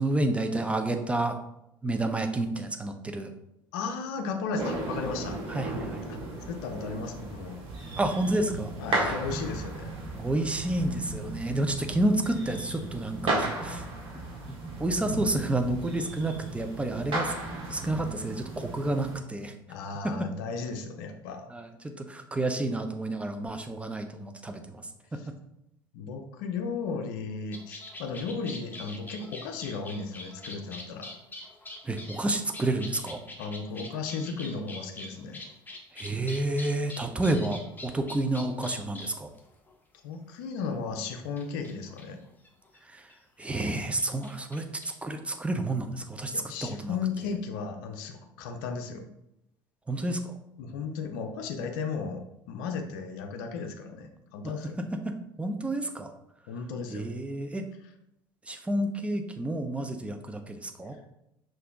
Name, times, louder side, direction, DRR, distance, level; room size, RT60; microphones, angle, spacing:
voice 1, 0.0-1.4 1.8-3.3 5.5-6.0 8.0-8.7 9.0-9.1 10.1-13.8 14.8-17.3 17.7-19.6 20.0-20.3 21.5-25.2 31.8-33.2 35.9-39.3 42.8-43.1 43.4-47.0 49.9-50.3 54.8-56.1 56.9-57.7 58.5-61.0, right 2 dB, 10° right, 6 dB, 0.6 m, -30 dB
voice 2, 3.7-5.4 6.1-6.2 6.5-7.6 8.8-9.9 19.7-21.5 25.9-31.1 33.4-35.4 40.0-42.2 46.3-49.0 50.6-54.8 56.5-57.1, left 5 dB, 60° left, 5 dB, 0.6 m, -35 dB
sound 1, 4.6-19.2, right 2 dB, 45° right, 1.5 m, -35 dB
sound 2, 27.5-39.7 40.8-40.9 41.4-42.8 43.1-43.2 43.4-44.9, left 2 dB, 15° left, 0.9 m, -44 dB
5.6 x 2.6 x 3.6 m, 0.82 s
figure-of-eight pair, 60°, 12 cm